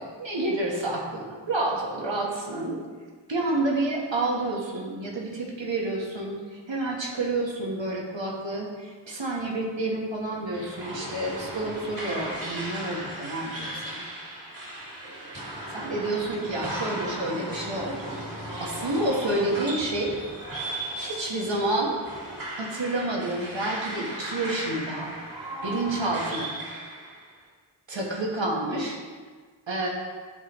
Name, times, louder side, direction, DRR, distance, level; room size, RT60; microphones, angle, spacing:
voice 1, 0.0-2.8 3.3-14.1 15.3-15.4 15.7-20.1 20.9-22.0 22.6-25.1 25.6-26.5 27.9-29.0 29.7-29.9, right 2 dB, 75° right, -2 dB, 1.4 m, -29 dB
sound 1, 10.5-27.3, right 1 dB, 45° right, 1.7 m, -36 dB
10.5 x 3.8 x 3.1 m, 1.5 s
wide cardioid pair, 65°, 45 cm